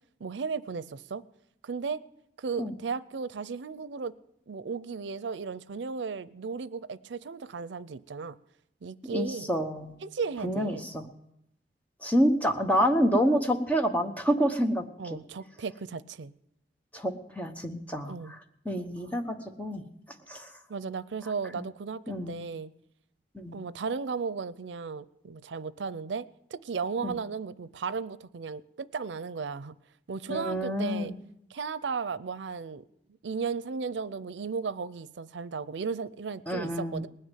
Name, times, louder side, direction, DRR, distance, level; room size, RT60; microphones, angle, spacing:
voice 1, 0.2-1.2 1.6-2.0 2.4-4.1 4.5-8.4 8.8-9.5 10.0-10.8 15.0-16.3 18.1-18.4 19.0-19.1 20.7-22.7 23.5-29.7 30.1-31.1 31.5-32.8 33.2-37.1, right 5 dB, 90° right, 0.5 m, -35 dB
voice 2, 9.1-10.0 10.4-11.0 12.0-14.8 16.9-18.4 18.6-19.8 20.3-20.5 22.1-22.4 23.3-23.6 27.0-27.1 30.3-31.1 36.5-37.0, equal, 10° left, 1.0 m, -28 dB
19.5 x 6.6 x 9.1 m
head